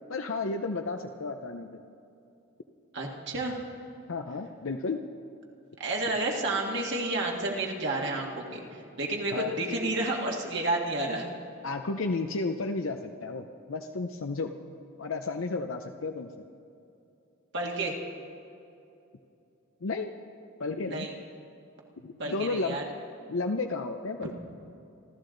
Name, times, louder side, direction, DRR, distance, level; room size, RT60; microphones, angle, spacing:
voice 1, 0.1-1.8 4.1-5.0 9.3-9.5 11.6-14.5 15.0-16.3 19.8-20.1 20.6-21.1 22.0-22.8 23.3-24.3, left 3 dB, 65° left, 5 dB, 0.6 m, -32 dB
voice 2, 2.9-3.6 5.8-11.3 17.5-17.9 20.9-21.1 22.2-22.8, right 2 dB, 55° right, -1 dB, 2.0 m, -30 dB
27.0 x 13.0 x 3.9 m, 2.7 s
head